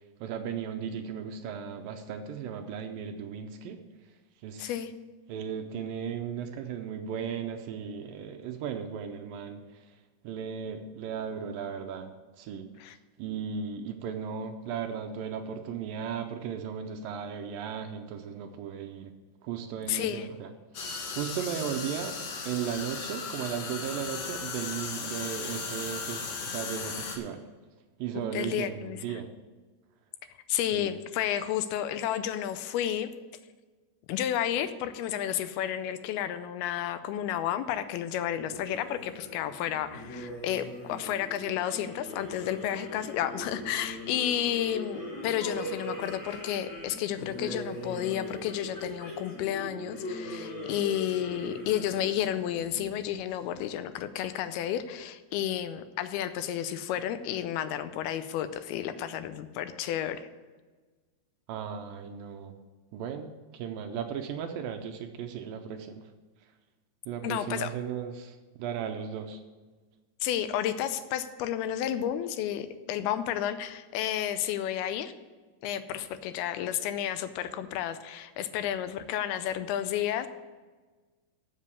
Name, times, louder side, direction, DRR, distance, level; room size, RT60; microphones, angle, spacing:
voice 1, 0.2-3.8 4.4-4.8 5.3-9.6 10.2-12.1 12.4-12.7 13.2-19.1 19.4-20.5 21.1-22.2 22.5-27.5 28.0-29.3 30.7-30.9 61.5-62.5 62.9-66.0 67.1-69.4, right 7 dB, 80° right, 6 dB, 2.2 m, -36 dB
voice 2, 4.6-4.9 12.8-13.0 19.9-20.3 28.3-29.2 30.5-33.1 34.1-60.2 67.2-67.7 70.2-75.1 75.6-80.3, left 11 dB, 90° left, 11 dB, 2.5 m, -31 dB
sound 1, 20.7-27.2, left 5 dB, 70° left, 3.0 m, -36 dB
sound 2, 38.4-53.3, left 1 dB, 55° left, 1.2 m, -40 dB
7.5 x 7.3 x 8.3 m, 1.3 s
omnidirectional pair, 4.4 m